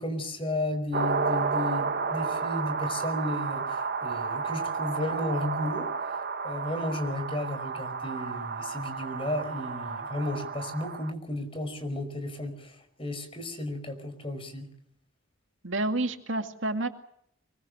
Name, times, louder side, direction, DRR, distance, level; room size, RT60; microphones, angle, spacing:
voice 1, 0.0-5.9 6.4-14.7, left 1 dB, 25° left, 8 dB, 5.1 m, -33 dB
sound 1, 0.9-11.1, right 5 dB, 50° right, 1.0 m, -32 dB
voice 2, 15.6-16.9, right 2 dB, 65° right, 6 dB, 2.3 m, -29 dB
25.0 x 23.5 x 6.4 m, 0.73 s
head